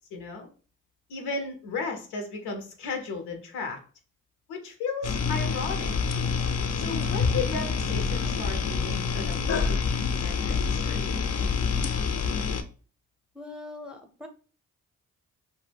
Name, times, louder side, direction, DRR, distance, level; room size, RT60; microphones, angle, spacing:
voice 1, 0.1-0.5 1.1-3.8 4.5-6.0 6.8-11.2, left 4 dB, 85° left, 4 dB, 0.7 m, -35 dB
sound 1, 5.0-12.6, left 5 dB, 40° left, 0.5 m, -27 dB
voice 2, 13.3-14.3, left 2 dB, ahead, 6 dB, 0.6 m, -41 dB
2.1 x 2.1 x 3.3 m, 0.39 s
hypercardioid pair, 40°, 38 cm